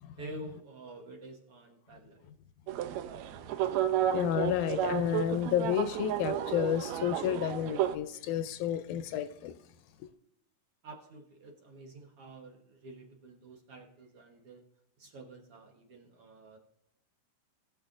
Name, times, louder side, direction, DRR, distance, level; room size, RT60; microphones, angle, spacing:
voice 1, 0.2-2.3 10.8-14.6 15.0-16.6, right 1 dB, 55° right, 1.8 m, -48 dB
sound 1, 2.7-8.0, right 11 dB, 75° right, 1.7 m, -32 dB
voice 2, 4.1-9.5, left 10 dB, 80° left, 2.0 m, -31 dB
19.5 x 6.7 x 2.5 m
omnidirectional pair, 3.7 m